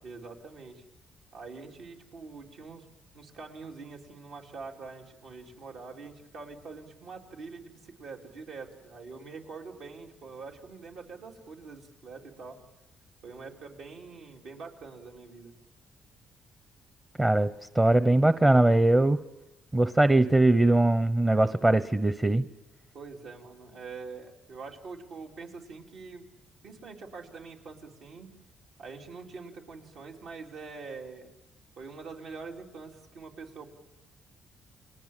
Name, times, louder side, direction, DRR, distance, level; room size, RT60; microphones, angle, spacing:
voice 1, 0.0-0.8 1.3-2.9 3.1-12.6 13.2-15.5 22.9-26.3 26.6-28.3 28.8-31.3 31.8-33.7, right 4 dB, 75° right, -1 dB, 3.7 m, -44 dB
voice 2, 17.2-19.2 19.7-22.4, right 2 dB, 20° right, 12 dB, 0.8 m, -21 dB
29.5 x 22.0 x 7.5 m, 1.0 s
cardioid pair, 90°, 0 cm